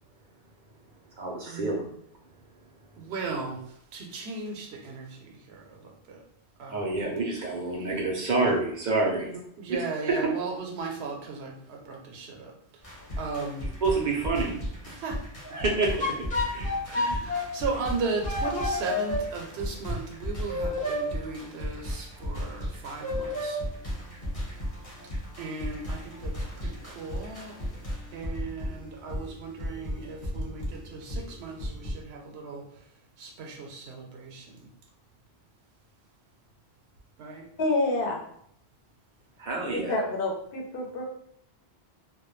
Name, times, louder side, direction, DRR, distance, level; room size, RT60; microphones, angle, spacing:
voice 1, 1.2-2.0 6.7-9.4 10.1-10.3 13.8-14.6 15.4-16.2 16.5-17.0 39.4-40.0, right 3 dB, 55° right, -1 dB, 0.5 m, -28 dB
voice 2, 2.9-6.2 6.6-7.1 9.6-12.5 13.2-13.6 14.9-15.2 16.9-23.6 25.4-27.6 28.1-32.6 33.2-34.7 37.2-37.5, right 4 dB, 80° right, 1 dB, 0.8 m, -36 dB
sound 1, 12.8-31.9, equal, 35° left, 0.8 m, -36 dB
sound 2, 16.0-17.4 18.2-19.2 20.5-21.0 23.0-23.5, left 2 dB, 10° left, 0.4 m, -29 dB
voice 3, 37.6-38.2 39.7-41.0, left 2 dB, 65° left, 0 dB, 0.7 m, -28 dB
2.2 x 2.1 x 3.0 m, 0.68 s
omnidirectional pair, 1.1 m